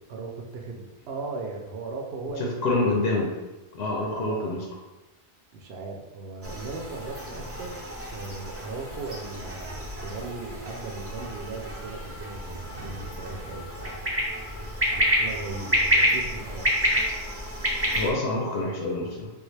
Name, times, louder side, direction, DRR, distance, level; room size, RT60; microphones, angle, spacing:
voice 1, 0.0-2.8 4.0-4.5 5.5-7.8 8.1-14.0 14.9-16.7, right 3 dB, 75° right, 1 dB, 0.8 m, -37 dB
voice 2, 2.6-3.3 3.7-4.6 17.9-19.3, left 2 dB, 85° left, -1 dB, 0.8 m, -26 dB
sound 1, 6.4-18.1, equal, 20° right, 0.5 m, -29 dB
3.4 x 2.3 x 3.1 m, 1.1 s
omnidirectional pair, 1.1 m